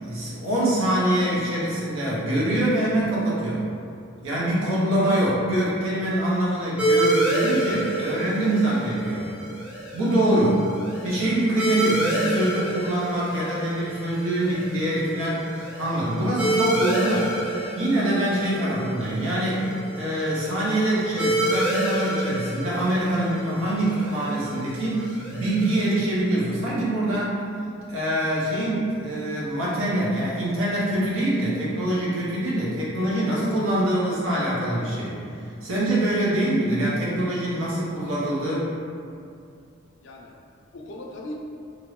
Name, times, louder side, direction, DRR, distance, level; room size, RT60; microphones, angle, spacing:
voice 1, 0.0-3.6 4.2-9.3 9.9-10.7 11.0-17.3 17.8-27.4 27.9-35.2 35.6-38.7, right 1 dB, 85° right, -7 dB, 0.9 m, -24 dB
sound 1, 6.8-25.9, right 1 dB, 5° right, 0.4 m, -28 dB
voice 2, 40.0-41.3, left 1 dB, 60° left, -1 dB, 0.4 m, -40 dB
3.0 x 2.6 x 3.1 m, 2.5 s
head